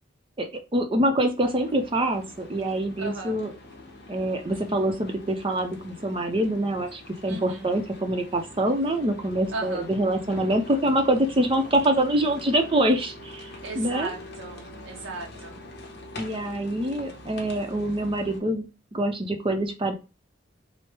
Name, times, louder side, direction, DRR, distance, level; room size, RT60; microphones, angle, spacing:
voice 1, 0.4-3.5 4.1-14.1 16.2-18.7 18.9-19.9, right 1 dB, 30° right, 5 dB, 0.6 m, -25 dB
sound 1, 1.4-18.4, left 1 dB, 55° left, 0.9 m, -44 dB
voice 2, 3.0-3.4 7.3-7.7 9.5-9.9 13.6-15.6, right 3 dB, 65° right, 1 dB, 0.6 m, -36 dB
4.5 x 2.0 x 3.3 m, 0.28 s
head